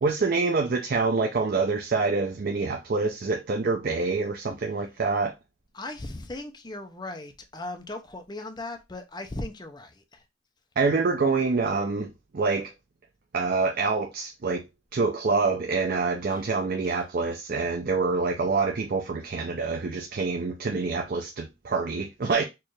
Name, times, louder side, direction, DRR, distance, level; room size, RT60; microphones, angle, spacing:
voice 1, 0.0-5.3 10.8-12.7 13.3-14.6 14.9-22.4, right 4 dB, 50° right, 0.5 m, -26 dB
voice 2, 5.7-10.2 16.2-16.4 16.8-17.0, left 2 dB, 20° left, 0.5 m, -38 dB
4.4 x 2.4 x 3.1 m
head